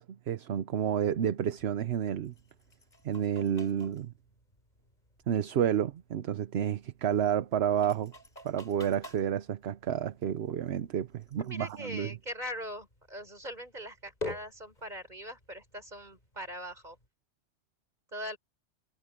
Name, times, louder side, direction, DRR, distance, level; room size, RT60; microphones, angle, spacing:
voice 1, 0.0-2.3 3.0-4.1 5.3-8.1 8.4-12.1, right 9 dB, 70° right, 1.0 m, -30 dB
sound 1, 1.3-17.1, left 2 dB, 40° left, 4.8 m, -50 dB
voice 2, 11.4-17.0 18.1-18.4, equal, 40° right, 5.3 m, -41 dB
omnidirectional pair, 1.2 m